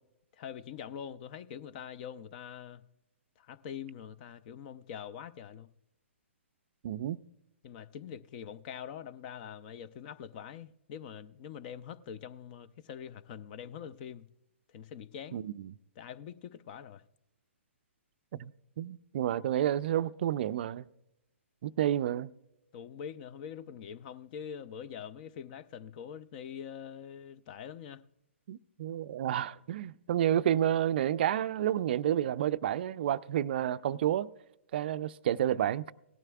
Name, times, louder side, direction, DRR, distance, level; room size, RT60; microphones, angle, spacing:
voice 1, 0.3-2.8 3.4-5.7 7.6-14.3 14.7-15.5 16.0-17.0 22.7-28.0, left 8 dB, 40° left, 0.6 m, -44 dB
voice 2, 6.8-7.2 15.3-15.7 18.4-18.5 18.8-20.9 21.6-22.3 28.5-34.3 34.7-35.9, right 11 dB, 50° right, 0.4 m, -30 dB
17.5 x 12.0 x 2.3 m
hypercardioid pair, 130°, 7 cm